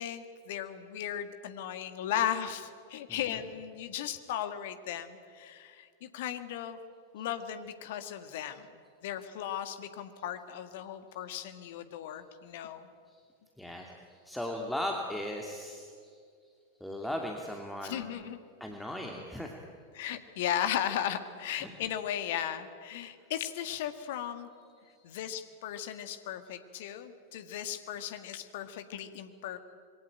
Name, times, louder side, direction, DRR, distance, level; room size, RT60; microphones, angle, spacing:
voice 1, 0.0-6.8 7.1-12.9 17.8-18.4 19.9-24.5 25.0-29.6, left 10 dB, 55° left, 10 dB, 1.8 m, -36 dB
voice 2, 13.6-16.2 16.8-18.1 18.6-19.5 21.6-21.7 24.8-25.2, left 1 dB, 5° left, 1 dB, 2.6 m, -38 dB
26.5 x 22.5 x 9.0 m, 2.2 s
figure-of-eight pair, 90°, 0 cm